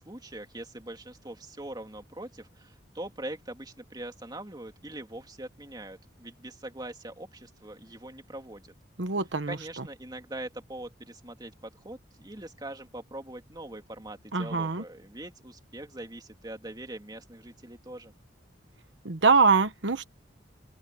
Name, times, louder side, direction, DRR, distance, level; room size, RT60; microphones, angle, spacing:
voice 1, 0.0-8.7 9.5-18.1, right 1 dB, 20° right, 2.6 m, -42 dB
voice 2, 9.0-9.8 14.3-14.8 19.0-20.1, right 4 dB, 75° right, 1.1 m, -24 dB
open air
head